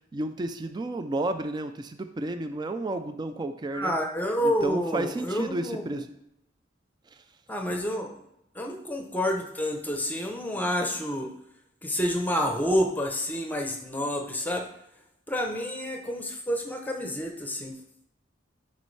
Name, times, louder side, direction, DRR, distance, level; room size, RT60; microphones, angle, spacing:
voice 1, 0.1-3.9 4.4-6.1 7.1-7.2, right 2 dB, 20° right, 8 dB, 0.3 m, -32 dB
voice 2, 3.7-6.0 7.5-8.1 8.5-11.3 11.8-14.7 15.3-17.8, equal, 10° left, 2 dB, 0.7 m, -29 dB
9.2 x 5.4 x 3.2 m, 0.81 s
head